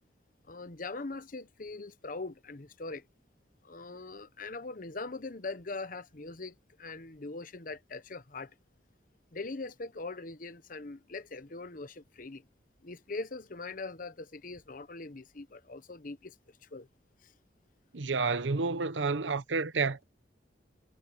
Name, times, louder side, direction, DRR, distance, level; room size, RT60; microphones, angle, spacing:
voice 1, 0.5-3.1 3.6-8.5 9.3-12.5 12.8-16.4 16.6-16.9 17.2-17.3, left 3 dB, 50° left, 1.0 m, -41 dB
voice 2, 17.9-20.0, right 4 dB, 90° right, 0.9 m, -30 dB
head